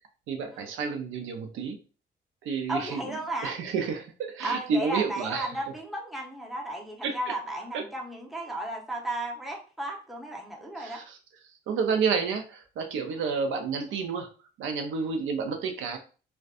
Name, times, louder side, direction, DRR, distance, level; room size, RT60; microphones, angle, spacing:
voice 1, 0.3-1.8 2.4-3.0 3.4-5.5 7.0-7.1 7.7-7.8 10.8-11.2 11.7-14.3 14.6-16.0, right 5 dB, 80° right, 6 dB, 0.5 m, -30 dB
voice 2, 2.7-3.5 4.4-11.0, right 1 dB, ahead, -1 dB, 0.7 m, -34 dB
2.5 x 2.2 x 2.4 m, 0.36 s
cardioid pair, 90°, 20 cm